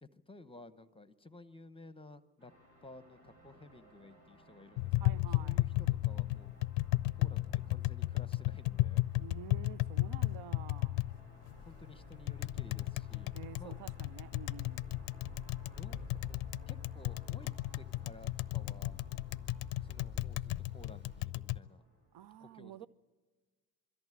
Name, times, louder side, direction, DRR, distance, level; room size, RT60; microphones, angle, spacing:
voice 1, 0.0-2.5 2.8-6.7 7.1-9.0 11.6-13.8 15.7-19.0 19.8-21.8 22.4-22.9, left 2 dB, 10° left, 0.9 m, -55 dB
sound 1, 2.4-22.3, equal, 85° right, 4.6 m, -61 dB
Tap, 4.8-21.6, left 19 dB, 65° left, 0.5 m, -34 dB
voice 2, 5.0-5.7 9.1-11.0 13.3-14.9 22.1-22.9, right 11 dB, 55° right, 0.8 m, -50 dB
sound 2, 11.5-21.3, left 1 dB, 20° right, 1.8 m, -53 dB
22.5 x 14.0 x 9.8 m
hypercardioid pair, 60°, 50 cm